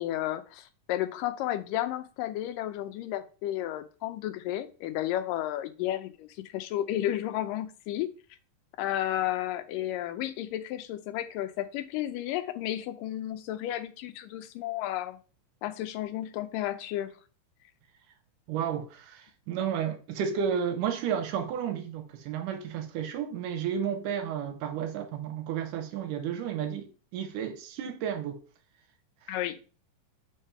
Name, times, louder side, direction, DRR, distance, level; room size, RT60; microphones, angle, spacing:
voice 1, 0.0-8.1 8.8-15.2 15.6-17.1 29.3-29.6, left 13 dB, 85° left, 2.3 m, -32 dB
voice 2, 18.5-28.4, right 8 dB, 80° right, 2.3 m, -32 dB
5.4 x 3.3 x 5.5 m
omnidirectional pair, 3.8 m